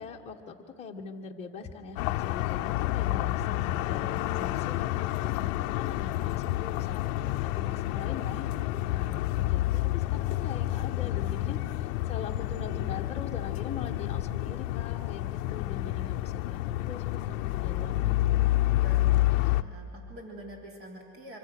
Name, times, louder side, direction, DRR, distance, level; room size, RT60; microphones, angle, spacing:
voice 1, 0.0-9.6 9.9-18.3, left 5 dB, 15° left, -1 dB, 1.7 m, -42 dB
sound 1, 2.0-19.6, left 16 dB, 60° left, 0.8 m, -29 dB
voice 2, 18.8-21.4, right 1 dB, 30° right, 0 dB, 3.8 m, -46 dB
25.5 x 24.5 x 6.3 m, 2.6 s
supercardioid pair, 140°, 45 cm